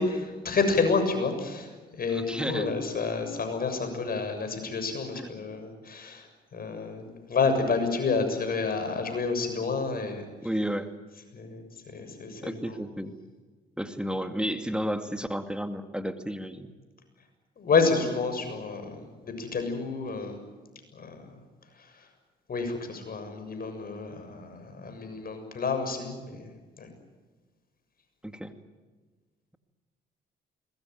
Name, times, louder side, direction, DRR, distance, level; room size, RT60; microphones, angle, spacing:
voice 1, 0.0-6.3 6.5-10.3 11.3-11.6 11.9-12.7 17.6-20.4 21.0-21.2 22.5-26.5 26.8-26.9, left 4 dB, 50° left, 7 dB, 7.1 m, -29 dB
voice 2, 2.1-2.7 10.4-10.9 12.4-13.2 13.8-16.7 28.2-28.5, equal, 5° right, 7 dB, 2.3 m, -32 dB
23.0 x 20.5 x 9.4 m, 1.3 s
supercardioid pair, 60°, 19 cm